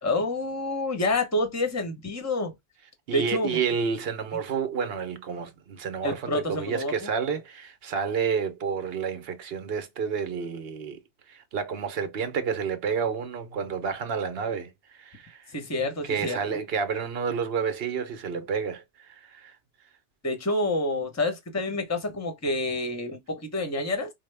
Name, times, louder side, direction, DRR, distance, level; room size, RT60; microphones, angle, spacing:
voice 1, 0.0-2.5 3.1-3.6 6.0-7.1 15.5-16.4 20.2-24.1, left 2 dB, 15° left, 0.7 m, -28 dB
voice 2, 3.1-11.0 11.3-15.5 16.0-19.6, right 6 dB, 65° right, 0.9 m, -30 dB
4.4 x 2.1 x 3.3 m
omnidirectional pair, 1.2 m